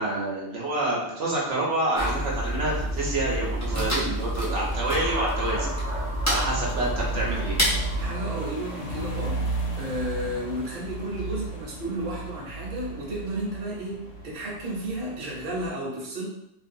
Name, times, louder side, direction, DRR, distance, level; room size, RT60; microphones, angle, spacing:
voice 1, 0.0-5.7 6.3-7.6, right 2 dB, 75° right, -4 dB, 0.9 m, -28 dB
sound 1, 1.9-8.1, right 1 dB, 25° left, 0.4 m, -28 dB
sound 2, 2.1-15.7, right 2 dB, 85° left, 1.0 m, -36 dB
sound 3, 4.9-10.5, equal, 50° left, 1.1 m, -39 dB
voice 2, 7.8-9.4 9.8-14.0 14.2-16.3, right 1 dB, 50° right, -4 dB, 0.8 m, -32 dB
2.5 x 2.2 x 2.6 m, 0.83 s
omnidirectional pair, 1.3 m